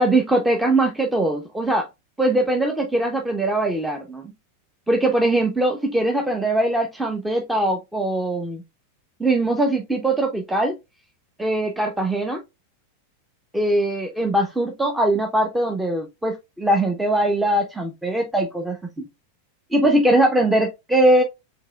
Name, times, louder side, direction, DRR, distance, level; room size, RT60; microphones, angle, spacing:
voice 1, 0.0-1.9 2.2-4.2 4.9-8.6 9.2-10.8 11.4-12.4 13.5-19.1 19.7-21.2, right 1 dB, 5° right, 0.7 m, -21 dB
4.6 x 3.7 x 2.3 m
figure-of-eight pair, 95°, 0 cm